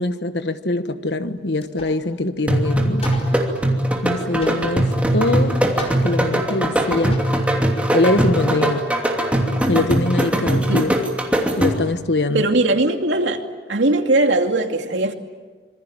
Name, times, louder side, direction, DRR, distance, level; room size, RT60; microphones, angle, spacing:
voice 1, 0.0-3.1 4.0-5.7 6.0-7.2 7.9-8.9 9.7-10.9 11.5-12.4, left 2 dB, 65° left, 1.4 m, -23 dB
sound 1, 1.6-2.1 2.4-2.5 3.0-3.5 4.4-5.1 5.8-6.4 6.8-6.9 7.1-7.5, left 1 dB, 35° left, 4.5 m, -35 dB
sound 2, 2.5-12.0, right 1 dB, 5° right, 2.8 m, -20 dB
voice 2, 12.3-13.4 13.7-15.1, right 2 dB, 85° right, 2.5 m, -19 dB
26.5 x 23.0 x 8.8 m
head